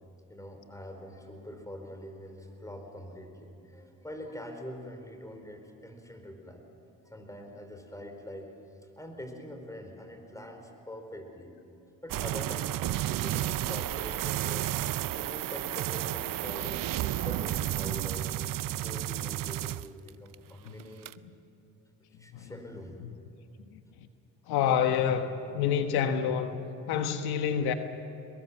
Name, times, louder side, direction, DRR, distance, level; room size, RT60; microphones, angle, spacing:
voice 1, 0.3-6.6 7.0-8.5 9.0-11.5 12.0-14.7 15.2-18.3 18.8-21.1 22.2-23.0, left 1 dB, 10° left, 4.5 m, -44 dB
sound 1, 12.1-20.3 20.7-21.1, right 14 dB, 60° right, 0.6 m, -32 dB
voice 2, 24.5-26.6 26.9-27.7, left 8 dB, 85° left, 1.3 m, -28 dB
22.5 x 22.0 x 7.3 m
cardioid pair, 75°, 37 cm